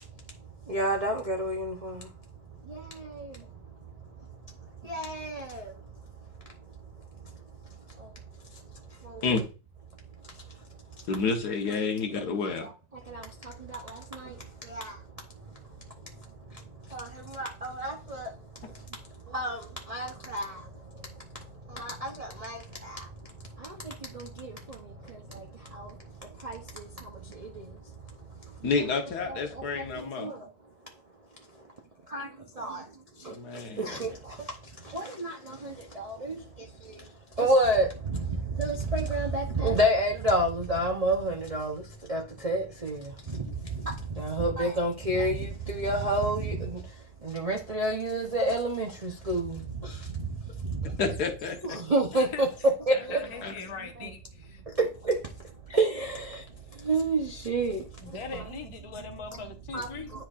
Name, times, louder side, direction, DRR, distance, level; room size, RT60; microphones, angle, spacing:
voice 1, 0.7-1.9 4.9-5.4 14.7-14.9 16.9-17.0 17.4-18.2 19.3-19.6 19.9-20.4 21.8-22.1 22.4-22.6 28.7-28.8 30.2-30.3 32.1-32.3 32.6-32.8 33.8-34.1 34.9-35.3 36.0-36.4 37.4-37.9 38.6-41.7 42.1-43.0 43.9-46.6 47.3-49.6 51.7-52.5 52.9-53.2 55.7-56.2 56.9-57.8 59.7-59.9, right 1 dB, 80° right, 0.3 m, -28 dB
voice 2, 11.1-12.7 28.6-30.3 33.3-33.9 51.0-51.8 53.4-53.5, left 4 dB, 60° left, 1.5 m, -29 dB
voice 3, 52.1-52.4 52.9-54.6 58.0-60.1, left 5 dB, 30° left, 0.5 m, -41 dB
10.0 x 4.5 x 2.5 m
omnidirectional pair, 2.0 m